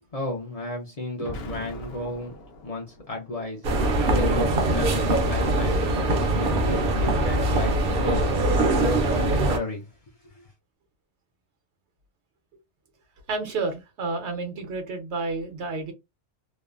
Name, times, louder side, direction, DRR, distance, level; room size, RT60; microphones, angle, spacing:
voice 1, 0.1-2.3 2.6-3.6 4.1-9.9 10.2-10.5, left 1 dB, 40° left, 0.7 m, -33 dB
Explosion, 1.2-3.3, left 1 dB, 65° left, 0.9 m, -40 dB
sound 1, 3.6-9.6, right 2 dB, 60° right, 0.8 m, -22 dB
voice 2, 13.3-15.9, right 3 dB, 75° right, 1.1 m, -30 dB
3.0 x 2.0 x 2.4 m
omnidirectional pair, 1.1 m